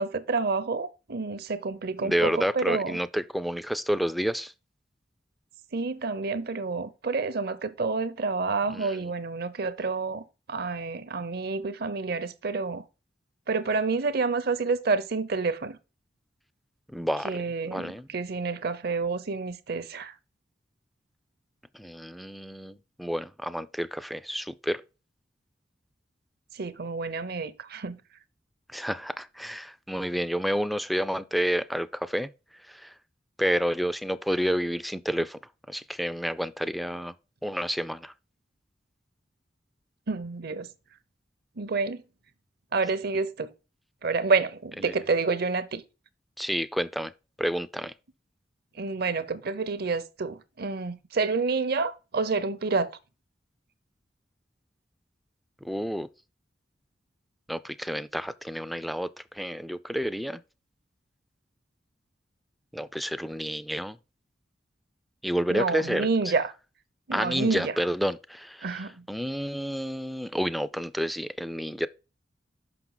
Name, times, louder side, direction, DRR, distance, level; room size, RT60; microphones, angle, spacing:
voice 1, 0.0-3.0 5.7-12.8 13.5-15.8 17.2-20.1 26.5-28.0 40.1-40.7 41.6-42.0 42.7-43.5 44.0-45.8 48.7-52.9 65.5-66.5 67.1-67.8 68.6-69.1, right 4 dB, 60° right, 0.7 m, -29 dB
voice 2, 2.0-4.5 8.7-9.0 16.9-17.4 17.7-18.1 21.7-24.8 28.7-32.3 32.7-32.9 33.4-35.4 35.7-37.1 37.4-38.1 44.8-44.9 46.4-47.1 47.4-47.9 55.6-56.1 57.5-60.4 62.7-64.0 65.2-66.1 67.1-71.9, equal, ahead, 0.3 m, -30 dB
6.0 x 5.8 x 3.8 m
head